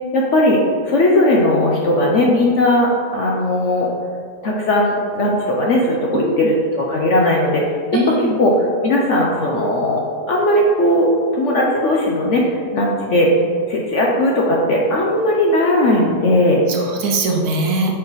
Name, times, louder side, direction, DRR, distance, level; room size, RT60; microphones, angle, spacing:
voice 1, 0.1-0.6 0.9-3.9 4.4-7.8 8.4-8.5 8.8-10.0 10.3-13.3 13.7-16.6, left 1 dB, 60° left, -2 dB, 0.8 m, -17 dB
voice 2, 6.1-6.5 7.9-8.3 16.7-18.0, right 2 dB, 70° right, 1 dB, 1.2 m, -21 dB
5.4 x 4.4 x 4.0 m, 2.1 s
omnidirectional pair, 1.8 m